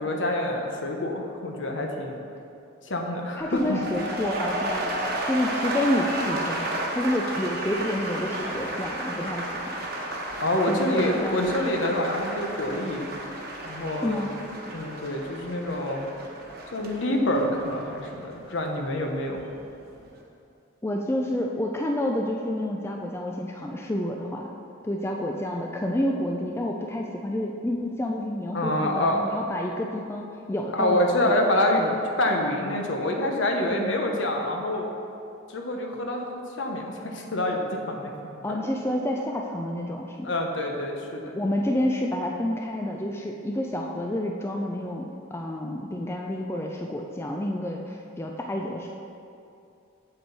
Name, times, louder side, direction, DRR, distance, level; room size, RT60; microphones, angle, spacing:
voice 1, 0.0-2.2 2.9-3.8 10.4-13.1 13.6-14.2 14.7-16.0 16.7-19.4 28.5-29.2 30.7-34.9 35.5-36.3 36.6-38.1 38.5-38.6 40.2-41.4, left 1 dB, 65° left, 2 dB, 1.0 m, -26 dB
voice 2, 3.4-4.9 5.2-9.8 10.7-11.4 13.9-14.4 20.8-24.5 24.8-31.0 31.2-31.4 31.8-32.0 33.7-33.9 38.4-40.3 41.4-49.0, left 1 dB, 10° left, 1 dB, 0.3 m, -29 dB
sound 1, 3.4-19.5 19.8-20.2, right 1 dB, 50° right, 1.2 m, -33 dB
7.9 x 7.8 x 4.1 m, 2.6 s
head